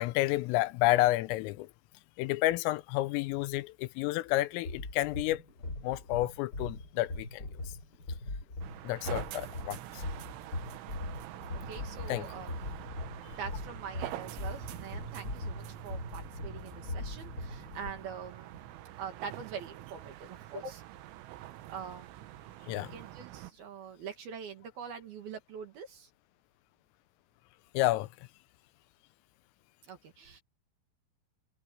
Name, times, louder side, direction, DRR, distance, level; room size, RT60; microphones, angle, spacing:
voice 1, 0.0-1.7 2.2-5.4 5.8-7.5 8.8-10.0 12.1-12.3 22.7-22.9 27.7-28.1, left 17 dB, 85° left, 3.3 m, -30 dB
sound 1, 4.3-17.9, left 2 dB, 20° left, 4.9 m, -41 dB
sound 2, 8.6-23.5, right 15 dB, 75° right, 3.3 m, -46 dB
sound 3, 11.4-18.2, left 5 dB, 45° left, 4.5 m, -53 dB
voice 2, 11.7-12.5 13.1-18.7 19.0-20.8 21.7-22.1 22.7-26.1 29.9-30.4, right 7 dB, 60° right, 3.3 m, -44 dB
omnidirectional pair, 5.9 m